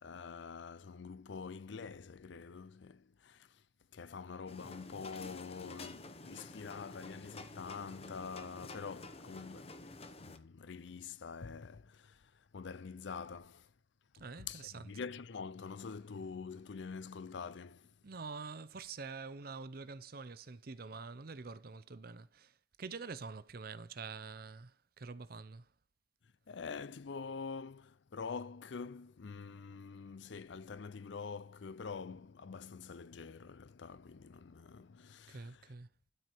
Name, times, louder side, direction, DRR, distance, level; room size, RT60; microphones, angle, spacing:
voice 1, 0.0-3.6 3.9-9.8 10.1-13.7 14.2-17.9 26.5-35.7, left 5 dB, 70° left, 0.5 m, -46 dB
sound 1, 4.5-10.4, left 2 dB, 30° left, 0.9 m, -50 dB
voice 2, 14.1-14.9 18.0-25.7 35.3-35.9, right 4 dB, 50° right, 0.7 m, -46 dB
12.5 x 4.7 x 4.3 m
head